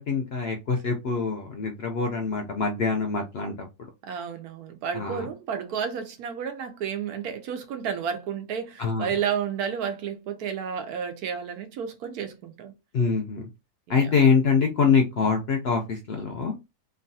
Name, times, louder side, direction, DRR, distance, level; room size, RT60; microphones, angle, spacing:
voice 1, 0.0-3.5 3.8-3.9 4.9-5.2 8.8-9.1 12.9-13.4 13.9-16.5, left 5 dB, 65° left, 0.6 m, -24 dB
voice 2, 4.0-12.7 13.9-14.1, right 7 dB, 85° right, 1.2 m, -31 dB
3.1 x 2.3 x 2.6 m
omnidirectional pair, 1.6 m